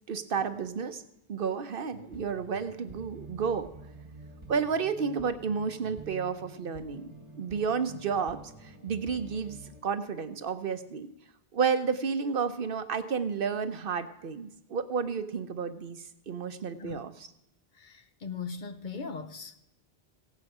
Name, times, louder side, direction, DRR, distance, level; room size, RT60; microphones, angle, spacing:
voice 1, 0.1-1.0 1.3-3.7 4.5-7.1 7.4-11.1 11.5-17.1, right 6 dB, 65° right, 0.9 m, -31 dB
sound 1, 1.9-9.8, right 2 dB, 30° right, 1.1 m, -48 dB
voice 2, 17.7-19.6, left 5 dB, 55° left, 0.9 m, -39 dB
16.5 x 8.5 x 4.9 m
omnidirectional pair, 1.0 m